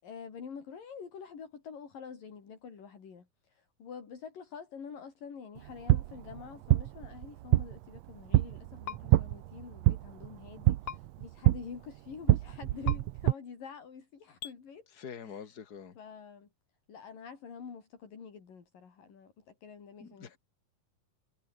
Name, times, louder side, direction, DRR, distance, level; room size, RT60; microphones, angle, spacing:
voice 1, 0.0-14.9 15.2-15.6 16.0-16.5 16.9-20.4, left 6 dB, 70° left, 5.8 m, -47 dB
sound 1, 5.6-13.3, right 16 dB, 90° right, 1.5 m, -28 dB
sound 2, 8.8-9.0 10.8-11.0 12.8-13.0 14.4-14.5, left 9 dB, 55° left, 2.5 m, -39 dB
voice 2, 15.0-15.9 20.0-20.4, left 7 dB, 35° left, 2.0 m, -45 dB
omnidirectional pair, 4.0 m